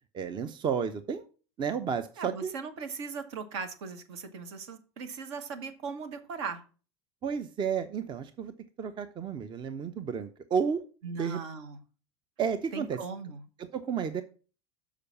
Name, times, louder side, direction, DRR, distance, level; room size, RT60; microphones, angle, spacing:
voice 1, 0.1-1.2 1.6-2.5 7.2-10.8 11.1-11.4 12.4-13.0 13.6-14.2, right 6 dB, 30° right, 11 dB, 0.7 m, -32 dB
voice 2, 2.2-6.6 11.0-11.8 12.7-13.4, right 5 dB, 65° right, 8 dB, 1.4 m, -38 dB
6.7 x 4.9 x 5.6 m, 0.36 s
hypercardioid pair, 80°, 15 cm